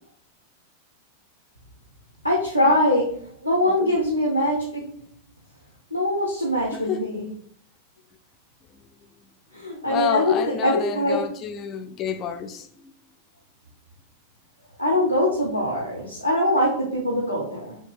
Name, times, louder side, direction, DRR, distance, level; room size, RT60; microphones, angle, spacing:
voice 1, 2.2-4.9 5.9-7.2 9.5-10.3 10.6-11.2 14.8-17.8, left 1 dB, 85° left, 0.6 m, -22 dB
voice 2, 3.6-4.0 6.7-7.1 9.8-12.9, left 7 dB, 35° left, 0.4 m, -30 dB
3.2 x 2.7 x 3.4 m
figure-of-eight pair, 90°, 0 cm